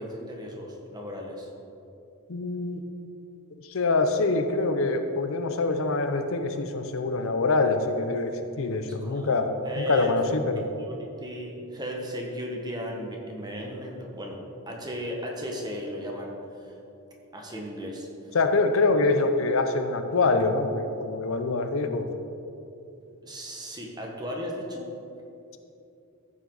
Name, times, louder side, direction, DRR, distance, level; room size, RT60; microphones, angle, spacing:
voice 1, 0.0-1.5 8.8-10.2 10.5-14.4 14.7-16.8 17.3-18.4 23.2-24.9, equal, 20° right, 0 dB, 1.4 m, -36 dB
voice 2, 2.3-2.8 3.7-10.7 18.3-22.1, left 3 dB, 65° left, 7 dB, 0.7 m, -25 dB
14.0 x 7.4 x 4.0 m, 2.8 s
head